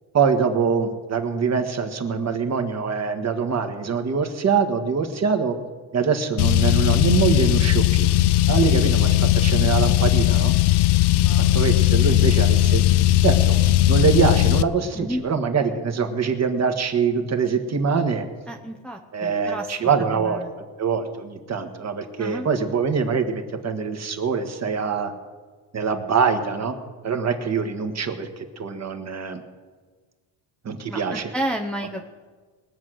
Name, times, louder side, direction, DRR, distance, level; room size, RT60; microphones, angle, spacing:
voice 1, 0.1-5.5 5.9-8.1 8.5-10.5 11.5-12.8 13.2-18.2 19.1-25.1 25.7-26.7 27.0-29.4 30.6-31.3, right 5 dB, 35° right, 6 dB, 1.6 m, -24 dB
Car, 6.4-14.6, left 15 dB, 60° left, 0.6 m, -18 dB
voice 2, 11.2-11.7 14.9-15.2 18.5-19.7 20.1-20.5 22.2-22.5 30.9-32.1, equal, ahead, 1 dB, 0.7 m, -31 dB
21.0 x 7.5 x 6.3 m, 1.4 s
cardioid pair, 120°, 47 cm